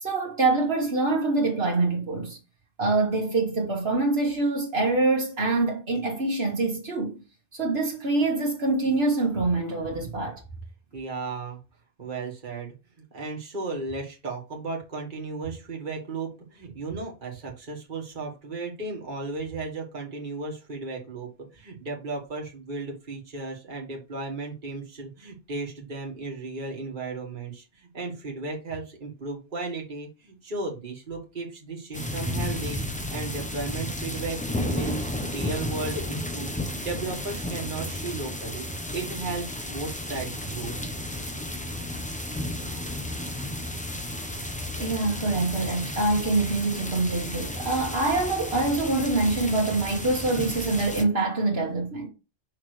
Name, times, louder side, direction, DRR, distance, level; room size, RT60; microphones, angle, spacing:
voice 1, 0.0-2.4 2.8-7.2 7.5-10.4 44.8-52.1, right 2 dB, 65° right, 1.7 m, -25 dB
voice 2, 10.9-11.6 12.0-12.7 13.1-36.5 36.8-40.8, right 3 dB, 45° right, 1.8 m, -35 dB
sound 1, 31.9-51.0, left 1 dB, 10° left, 0.7 m, -33 dB
6.2 x 5.7 x 3.2 m
omnidirectional pair, 1.1 m